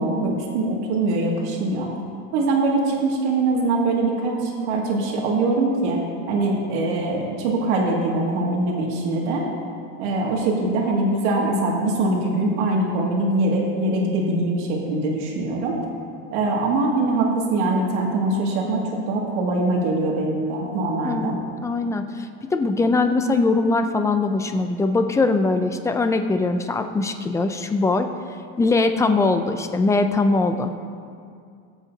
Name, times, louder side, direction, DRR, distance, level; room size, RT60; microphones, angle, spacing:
voice 1, 0.0-1.9 2.3-6.0 6.3-9.5 10.0-15.8 16.3-21.4, right 2 dB, 85° right, -2 dB, 2.4 m, -23 dB
voice 2, 21.0-21.4 21.6-28.1 28.6-30.8, left 3 dB, 10° left, 7 dB, 0.4 m, -21 dB
21.0 x 8.1 x 2.8 m, 2.3 s
cardioid pair, 150°, 33 cm